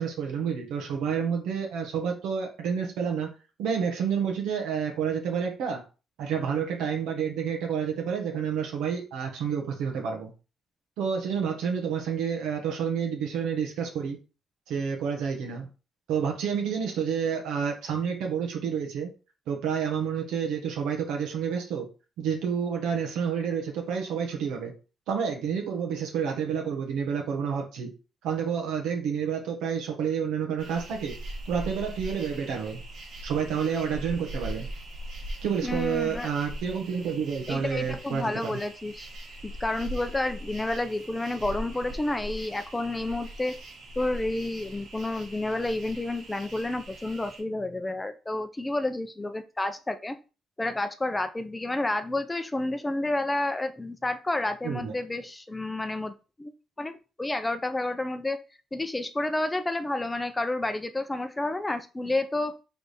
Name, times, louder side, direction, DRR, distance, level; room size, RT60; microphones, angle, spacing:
voice 1, 0.0-3.3 3.6-5.8 6.2-10.3 11.0-14.2 14.7-15.7 16.1-19.1 19.5-21.9 22.2-24.7 25.1-27.9 28.2-31.1 31.5-32.8 33.2-34.7 35.4-38.6 54.6-54.9, right 7 dB, 90° right, 2 dB, 1.0 m, -29 dB
sound 1, 30.6-47.4, right 1 dB, 65° right, 1.3 m, -41 dB
voice 2, 35.6-36.3 37.5-39.1 39.4-43.6 44.0-50.2 50.6-56.1 56.4-56.5 56.8-58.4 58.7-62.6, left 2 dB, 15° left, 9 dB, 0.4 m, -30 dB
3.3 x 3.3 x 4.1 m, 0.32 s
cardioid pair, 90°, 0 cm